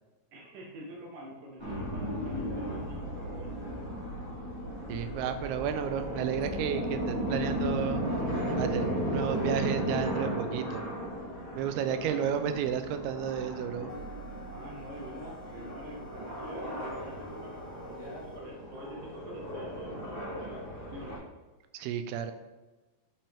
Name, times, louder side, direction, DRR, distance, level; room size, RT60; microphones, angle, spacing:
voice 1, 0.3-3.5 11.7-12.4 14.5-20.6 20.9-21.2, equal, 75° right, 0 dB, 2.1 m, -46 dB
sound 1, 1.6-21.2, equal, 15° right, 1.7 m, -35 dB
voice 2, 4.9-8.0 8.6-10.9 11.6-13.9 21.7-22.3, right 8 dB, 90° right, 9 dB, 2.6 m, -32 dB
sound 2, 13.9-18.4, right 1 dB, 65° left, 1.5 m, -49 dB
8.5 x 5.6 x 3.5 m, 1.2 s
omnidirectional pair, 4.4 m